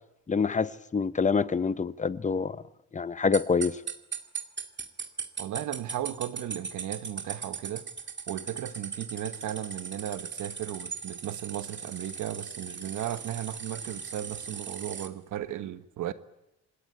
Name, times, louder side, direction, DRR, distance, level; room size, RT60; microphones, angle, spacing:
voice 1, 0.3-2.6 2.9-3.8, left 5 dB, 25° left, 1.0 m, -26 dB
sound 1, 3.3-15.1, right 6 dB, 35° right, 2.4 m, -38 dB
voice 2, 5.4-7.9 8.3-16.1, right 12 dB, 80° right, 1.4 m, -35 dB
26.5 x 20.0 x 9.3 m
cardioid pair, 90°, 30 cm